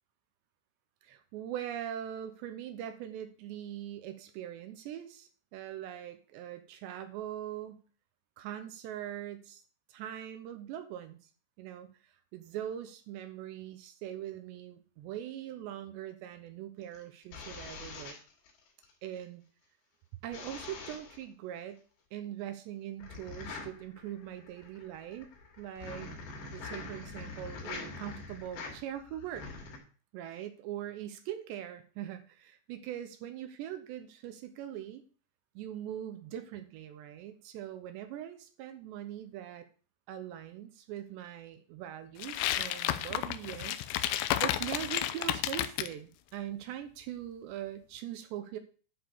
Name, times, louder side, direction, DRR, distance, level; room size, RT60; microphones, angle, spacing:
voice 1, 1.0-7.8 8.4-9.6 9.9-11.3 11.6-18.2 19.0-19.4 20.2-21.8 22.1-25.3 25.6-26.1 26.5-29.5 30.1-35.0 35.6-39.7 40.1-48.6, right 11 dB, 75° right, 9 dB, 2.9 m, -42 dB
sound 1, 16.8-18.9 20.3-21.2 23.0-29.8, left 4 dB, 60° left, 4.4 m, -44 dB
sound 2, 42.2-45.9, left 13 dB, 80° left, 2.6 m, -32 dB
11.5 x 5.1 x 6.8 m, 0.39 s
omnidirectional pair, 5.4 m